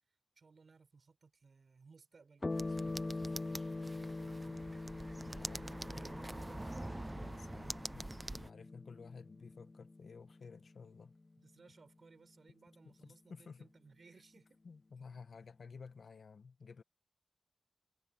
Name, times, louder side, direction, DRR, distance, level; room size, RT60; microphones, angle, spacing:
voice 1, 0.1-6.5 11.4-14.6, right 4 dB, 65° right, 5.4 m, -63 dB
sound 1, 2.4-11.3, left 2 dB, 35° left, 0.5 m, -44 dB
sound 2, 2.5-8.5, right 2 dB, 25° right, 0.8 m, -45 dB
voice 2, 5.2-5.7 7.1-11.1 12.8-13.7 14.6-16.8, left 5 dB, 80° left, 1.3 m, -53 dB
wide cardioid pair, 75°, 0 cm